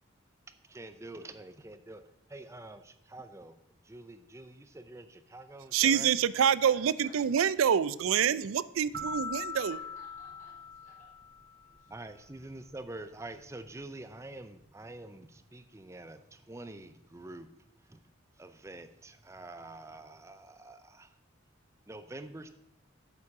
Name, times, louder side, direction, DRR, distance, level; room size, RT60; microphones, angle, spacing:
voice 1, 0.7-2.0 2.3-3.5 3.8-6.1 11.9-17.5 17.9-18.0 18.4-21.1 21.9-22.5, right 2 dB, 15° right, 10 dB, 0.5 m, -46 dB
voice 2, 5.7-9.8, right 8 dB, 90° right, 17 dB, 0.4 m, -26 dB
voice 3, 6.6-7.7 9.7-10.9 11.8-11.9, left 2 dB, 40° left, -5 dB, 4.2 m, -57 dB
sound 1, 8.9-11.7, left 3 dB, 50° right, 1.1 m, -41 dB
8.6 x 7.1 x 4.8 m, 0.78 s
head